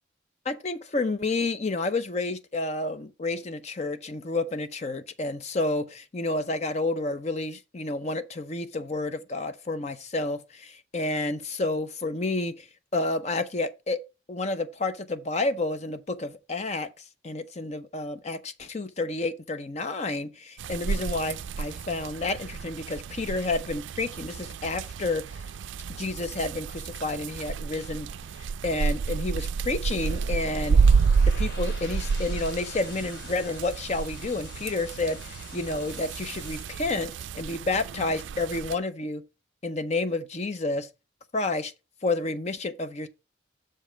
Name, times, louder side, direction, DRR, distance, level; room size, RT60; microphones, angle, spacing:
voice 1, 0.5-12.7 12.9-14.0 14.3-16.9 17.2-25.4 25.9-28.1 28.4-30.9 31.3-39.2 39.6-40.9 41.3-41.7 42.0-43.1, left 2 dB, 35° left, 0.5 m, -30 dB
sound 1, 20.6-38.8, right 5 dB, 70° right, 0.3 m, -29 dB
sound 2, 30.0-36.6, left 1 dB, 60° left, 3.9 m, -44 dB
6.6 x 5.3 x 4.9 m
head